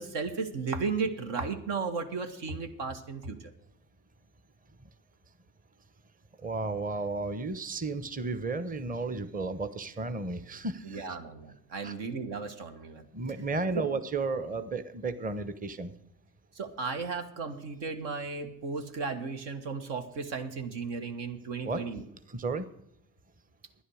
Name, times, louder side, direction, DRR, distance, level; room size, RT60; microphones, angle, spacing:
voice 1, 0.0-3.4 10.8-13.0 13.7-13.8 16.5-22.0, right 4 dB, 70° right, 7 dB, 1.7 m, -35 dB
voice 2, 6.4-11.2 11.8-11.9 13.1-15.9 21.6-21.9 22.3-22.7, right 3 dB, 20° right, 11 dB, 1.0 m, -33 dB
11.0 x 10.0 x 6.3 m, 0.78 s
supercardioid pair, 65°, 43 cm